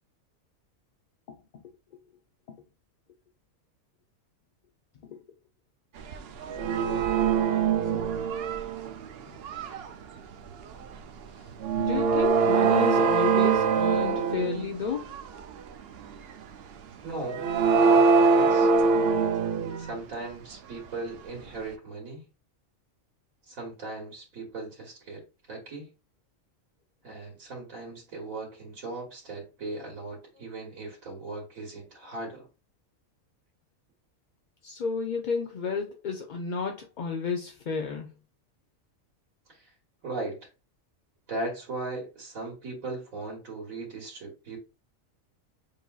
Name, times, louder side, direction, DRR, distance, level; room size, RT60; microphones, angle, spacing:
sound 1, 6.1-6.2 6.4-8.9 9.4-9.8 11.6-14.7 15.1-15.2 17.3-19.9, right 5 dB, 60° right, 0.7 m, -23 dB
voice 1, 11.8-15.1 34.6-38.1, left 5 dB, 50° left, 0.5 m, -31 dB
voice 2, 17.0-17.5 17.8-18.7 19.8-22.2 23.5-25.2 25.5-25.9 27.0-32.5 39.5-39.7 40.0-40.4 41.3-44.6, right 2 dB, 85° right, 1.9 m, -38 dB
6.5 x 2.7 x 2.4 m
omnidirectional pair, 1.4 m